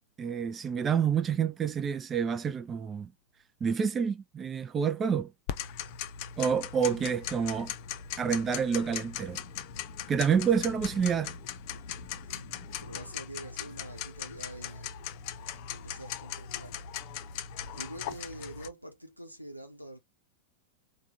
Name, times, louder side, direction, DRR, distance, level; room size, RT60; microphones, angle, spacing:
voice 1, 0.2-3.1 3.6-5.3 6.4-7.7 8.2-9.4 10.1-11.3, right 7 dB, 20° right, 0.4 m, -28 dB
Tick-tock, 5.5-18.7, left 9 dB, 45° left, 0.5 m, -39 dB
voice 2, 10.4-10.8 12.1-14.9 15.7-16.9 17.7-20.0, right 1 dB, 90° right, 0.8 m, -45 dB
3.5 x 2.2 x 2.7 m
figure-of-eight pair, 90°, 0 cm